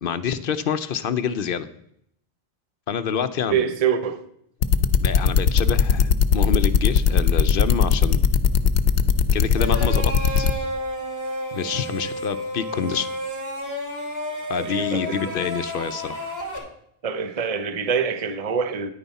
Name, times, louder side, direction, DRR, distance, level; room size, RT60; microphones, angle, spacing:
voice 1, 0.0-1.7 2.9-3.6 5.0-8.2 9.3-10.5 11.5-13.1 14.5-16.3, left 7 dB, 60° left, 0.7 m, -27 dB
voice 2, 3.5-4.2 14.6-15.2 17.0-18.9, right 7 dB, 40° right, 0.8 m, -25 dB
sound 1, 4.6-10.5, left 7 dB, 90° left, 1.0 m, -17 dB
sound 2, 9.6-16.6, equal, 15° right, 2.9 m, -31 dB
10.0 x 9.2 x 4.1 m
omnidirectional pair, 1.1 m